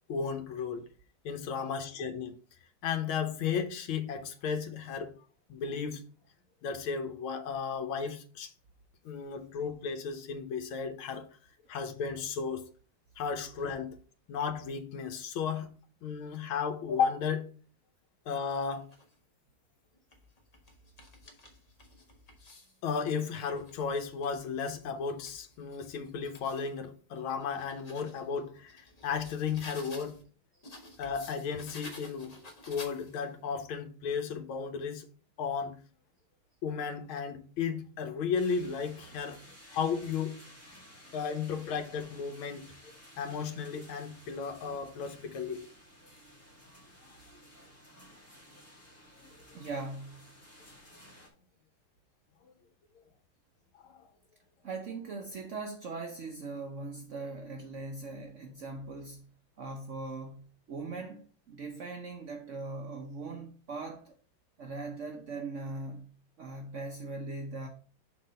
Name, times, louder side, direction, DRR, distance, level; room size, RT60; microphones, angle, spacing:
voice 1, 0.1-0.8 1.2-2.3 2.8-5.1 5.5-6.0 6.6-8.5 9.0-11.3 11.7-12.6 13.2-14.0 14.3-15.7 16.0-17.5 18.3-18.9 22.8-30.2 31.0-32.4 32.7-35.1 35.4-35.8 36.6-39.4 39.7-40.3 41.1-42.7 43.2-45.6 52.4-52.5 53.8-54.1, left 6 dB, 80° left, 1.7 m, -34 dB
sound 1, 18.4-19.1 19.8-22.8 23.2-26.7 27.2-30.2 30.6-33.4, left 2 dB, 45° left, 0.5 m, -52 dB
sound 2, 38.4-51.3, equal, 5° left, 1.7 m, -55 dB
voice 2, 49.5-50.3 54.6-59.3 59.6-64.2 64.6-66.1 66.4-67.7, right 3 dB, 85° right, 0.6 m, -40 dB
5.8 x 3.9 x 5.4 m
omnidirectional pair, 2.3 m